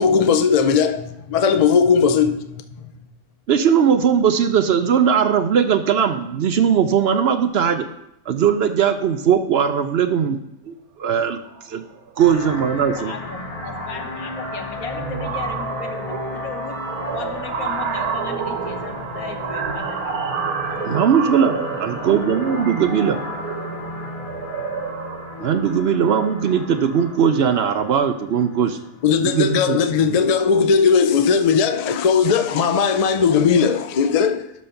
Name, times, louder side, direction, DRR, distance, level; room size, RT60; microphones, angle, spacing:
voice 1, 0.0-2.8 29.0-34.4, left 6 dB, 65° left, 0.3 m, -18 dB
voice 2, 3.5-7.9 8.3-10.4 10.6-11.4 11.6-11.8 12.2-13.1 20.8-23.2 25.4-28.8 29.2-30.2, right 7 dB, 60° right, 0.7 m, -19 dB
sound 1, 11.5-11.6 11.9-12.2 12.4-27.3, right 6 dB, 85° right, 1.3 m, -30 dB
sound 2, 12.2-29.1, left 3 dB, 35° left, 0.7 m, -34 dB
voice 3, 12.8-16.8 17.1-20.2 21.7-22.2, left 6 dB, 80° left, 1.4 m, -36 dB
12.0 x 4.2 x 5.7 m
omnidirectional pair, 1.5 m